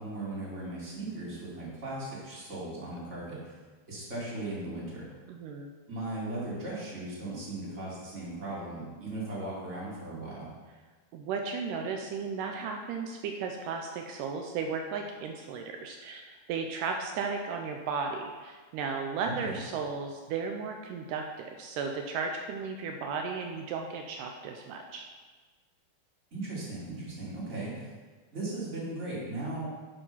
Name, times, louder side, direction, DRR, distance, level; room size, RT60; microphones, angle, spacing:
voice 1, 0.0-3.6 3.9-5.1 5.9-10.5 19.2-19.6 26.3-27.9 28.3-29.7, right 2 dB, 20° right, -7 dB, 2.7 m, -37 dB
voice 2, 5.3-5.7 11.1-25.1, right 5 dB, 90° right, 3 dB, 1.8 m, -35 dB
11.0 x 5.5 x 5.6 m, 1.4 s
omnidirectional pair, 4.6 m